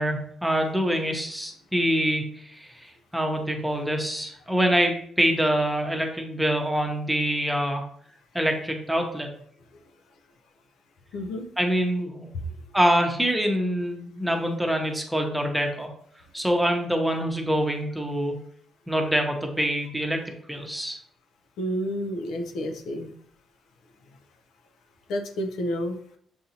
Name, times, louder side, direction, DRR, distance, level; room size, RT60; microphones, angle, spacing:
voice 1, 0.0-7.8 8.3-9.3 11.6-12.3 12.7-15.9 16.3-18.4 18.9-21.0, equal, 5° right, 2 dB, 0.8 m, -25 dB
voice 2, 11.1-11.4 21.6-23.1 25.1-26.0, equal, 80° left, 5 dB, 0.5 m, -30 dB
6.9 x 2.6 x 2.8 m, 0.65 s
cardioid pair, 90°, 0 cm